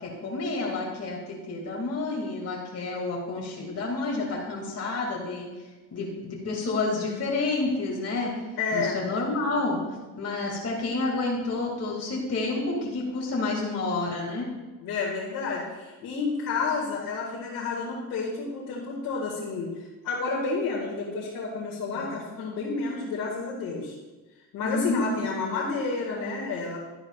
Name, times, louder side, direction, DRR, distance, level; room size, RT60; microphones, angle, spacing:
voice 1, 0.0-5.5 5.9-8.3 8.7-9.8 10.2-14.5 21.9-22.2 24.6-25.4, left 3 dB, 45° left, -2 dB, 2.4 m, -29 dB
voice 2, 8.6-9.0 14.8-19.7 20.0-23.9 24.5-26.8, left 4 dB, 65° left, -5 dB, 2.0 m, -30 dB
12.0 x 9.7 x 2.4 m, 1.2 s
cardioid pair, 90°, 36 cm